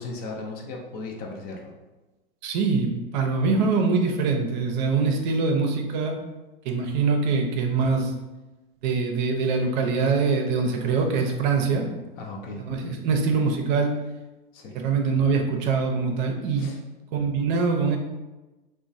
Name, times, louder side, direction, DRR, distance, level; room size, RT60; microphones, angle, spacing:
voice 1, 0.0-1.7 12.2-12.6 14.5-14.8 16.6-16.8, left 3 dB, 35° left, 1 dB, 0.5 m, -36 dB
voice 2, 2.4-6.1 6.6-8.1 8.8-11.9 12.6-13.9 14.7-16.7 17.1-18.0, right 4 dB, 55° right, 2 dB, 0.5 m, -23 dB
2.9 x 2.2 x 2.5 m, 1.1 s
hypercardioid pair, 100°, 29 cm